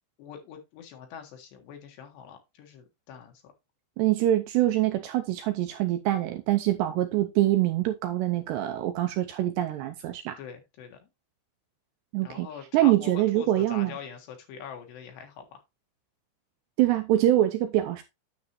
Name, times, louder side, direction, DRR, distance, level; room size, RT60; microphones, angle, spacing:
voice 1, 0.2-3.5 10.4-11.1 12.2-15.6, left 8 dB, 70° left, 3.5 m, -44 dB
voice 2, 4.0-10.4 12.1-12.5 12.7-13.9 16.8-18.0, right 14 dB, 80° right, 2.5 m, -24 dB
9.7 x 7.1 x 3.0 m
omnidirectional pair, 5.5 m